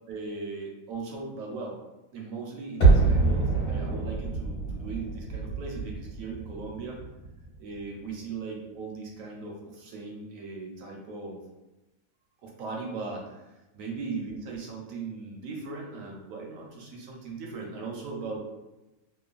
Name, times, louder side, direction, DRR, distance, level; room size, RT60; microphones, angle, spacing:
voice 1, 0.1-1.8 2.1-7.0 7.6-11.4 12.4-18.4, right 4 dB, 70° right, -1 dB, 0.9 m, -38 dB
sound 1, 2.8-7.7 8.0-8.1, right 4 dB, 50° left, 1.4 m, -25 dB
3.0 x 2.1 x 2.3 m, 1.0 s
omnidirectional pair, 1.7 m